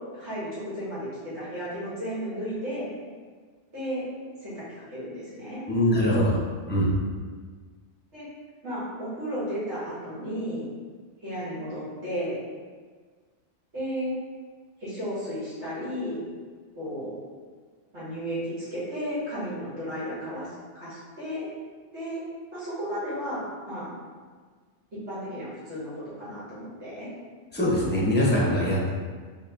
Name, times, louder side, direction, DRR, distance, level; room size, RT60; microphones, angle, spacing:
voice 1, 0.1-2.9 3.7-4.0 4.4-4.6 4.9-5.6 8.1-8.3 8.6-10.6 11.2-12.4 13.7-14.1 14.8-16.2 16.8-17.2 17.9-20.5 20.7-21.5 21.9-22.2 22.5-24.0 25.1-27.1, equal, 75° right, -12 dB, 1.9 m, -33 dB
voice 2, 5.7-6.4 6.7-6.9 27.5-28.9, equal, 15° left, -5 dB, 0.5 m, -22 dB
3.5 x 2.5 x 3.4 m, 1.5 s
omnidirectional pair, 1.2 m